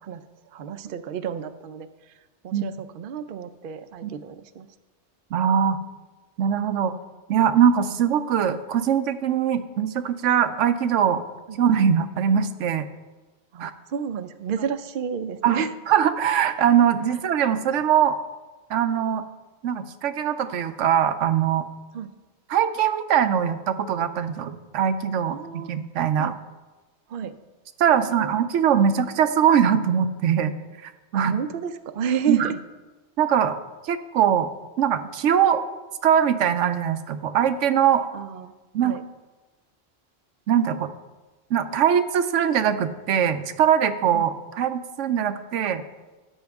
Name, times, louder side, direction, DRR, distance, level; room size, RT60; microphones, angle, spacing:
voice 1, 0.5-2.1 2.4-4.7 11.5-11.6 13.5-15.7 21.9-22.1 25.3-25.7 26.2-26.4 27.1-27.4 27.9-28.3 31.1-32.5 38.1-38.5 38.8-39.0 44.1-44.2, right 7 dB, 55° right, 10 dB, 0.7 m, -31 dB
voice 2, 5.3-5.8 6.4-6.9 7.3-11.2 11.6-12.9 13.6-13.7 15.4-18.2 18.7-19.2 19.6-21.7 22.5-26.3 27.8-30.6 30.8-31.3 32.3-32.5 33.2-33.6 33.8-34.5 34.8-35.6 36.0-38.1 38.7-39.0 40.5-40.9 41.5-45.8, right 8 dB, 85° right, 10 dB, 1.0 m, -22 dB
13.0 x 8.7 x 3.5 m, 1.2 s
omnidirectional pair, 1.2 m